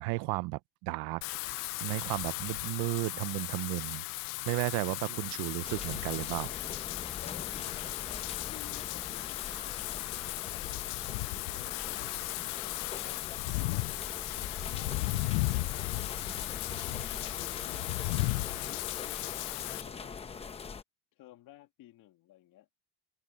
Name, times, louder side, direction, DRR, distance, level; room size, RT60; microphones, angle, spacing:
voice 1, 0.0-4.0 4.5-6.5 9.5-9.6, right 24 dB, 50° right, 0.5 m, -34 dB
Wind / Rain, 1.2-19.8, left 27 dB, 80° left, 0.5 m, -36 dB
sound 1, 5.6-20.8, left 5 dB, 15° left, 0.7 m, -43 dB
voice 2, 7.2-12.1 12.7-14.1 14.7-15.9 16.8-18.2 18.6-20.4 21.1-22.7, left 15 dB, 45° left, 1.9 m, -55 dB
cardioid pair, 155°, 46 cm